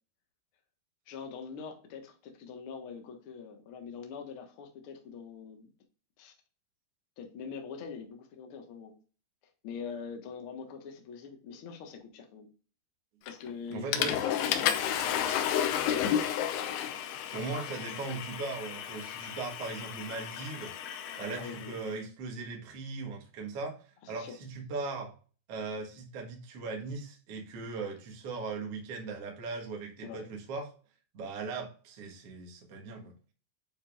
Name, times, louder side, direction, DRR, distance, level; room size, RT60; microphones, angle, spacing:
voice 1, 1.1-5.7 6.2-6.3 7.2-8.9 9.6-12.5 13.2-16.3 21.3-21.8 24.0-24.4 30.0-30.3, left 6 dB, 70° left, 3 dB, 1.3 m, -44 dB
Water / Toilet flush, 13.3-13.5 13.9-21.8, left 10 dB, 85° left, 2.9 m, -32 dB
voice 2, 13.7-14.3 17.3-20.7 21.2-25.1 25.5-30.7 31.1-33.3, right 4 dB, 55° right, 0 dB, 1.8 m, -39 dB
8.6 x 5.1 x 2.4 m, 0.37 s
omnidirectional pair, 4.6 m